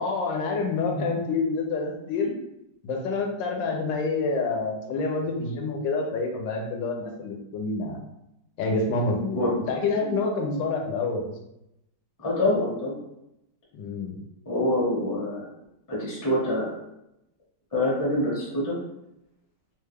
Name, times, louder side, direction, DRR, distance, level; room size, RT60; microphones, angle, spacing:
voice 1, 0.0-2.3 2.8-8.0 8.6-9.4 9.7-11.3 13.7-14.2, left 3 dB, 85° left, 1 dB, 1.3 m, -27 dB
voice 2, 12.2-13.0 14.5-15.4 15.9-16.7 17.7-18.8, left 1 dB, 20° left, -6 dB, 0.5 m, -25 dB
3.4 x 2.2 x 3.3 m, 0.85 s
omnidirectional pair, 2.0 m